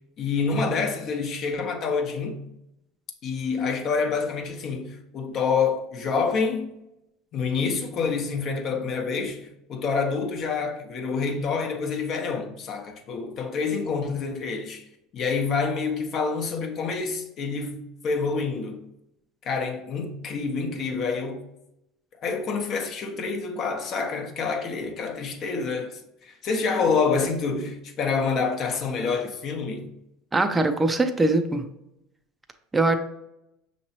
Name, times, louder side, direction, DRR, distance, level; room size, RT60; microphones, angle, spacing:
voice 1, 0.2-2.4 3.2-6.7 7.3-14.8 15.1-18.8 19.4-21.4 22.2-29.9, left 5 dB, 50° left, 0.8 m, -27 dB
voice 2, 30.3-31.6 32.7-32.9, right 2 dB, 15° right, 0.4 m, -22 dB
5.6 x 3.0 x 2.8 m
supercardioid pair, 95°, 0 cm